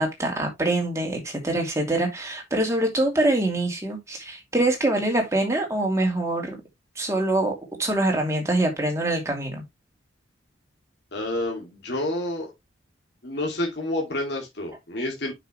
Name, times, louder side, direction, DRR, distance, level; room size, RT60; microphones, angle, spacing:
voice 1, 0.0-6.6 7.0-7.5 7.8-9.6, right 1 dB, 15° right, 2.7 m, -24 dB
voice 2, 11.1-12.5 13.2-15.3, left 1 dB, 55° left, 2.4 m, -29 dB
7.7 x 6.1 x 3.1 m
head